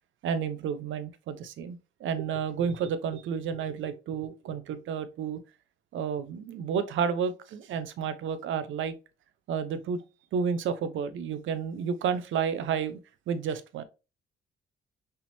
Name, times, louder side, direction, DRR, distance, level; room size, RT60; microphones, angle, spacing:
voice 1, 0.2-5.4 5.9-9.0 9.5-10.0 10.3-13.0 13.3-13.8, right 7 dB, 75° right, 0.7 m, -31 dB
5.5 x 3.5 x 2.6 m
cardioid pair, 90°, 20 cm